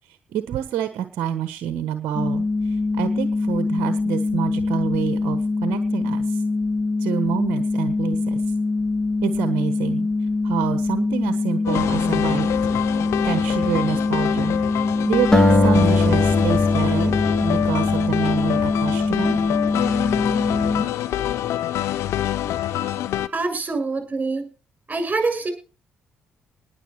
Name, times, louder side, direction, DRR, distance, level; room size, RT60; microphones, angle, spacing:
voice 1, 0.1-6.4 7.0-8.4 9.2-10.1 10.4-12.5 13.2-19.4, right 10 dB, 60° right, 10 dB, 1.3 m, -27 dB
sound 1, 2.1-20.8, left 3 dB, 30° left, 3.1 m, -23 dB
sound 2, 11.6-23.3, left 12 dB, 65° left, 0.8 m, -26 dB
sound 3, 15.3-18.5, left 2 dB, 10° left, 3.9 m, -21 dB
voice 2, 23.3-24.4 24.9-25.5, right 3 dB, 30° right, 7 dB, 7.2 m, -25 dB
20.0 x 7.4 x 4.9 m, 0.35 s
hypercardioid pair, 45°, 5 cm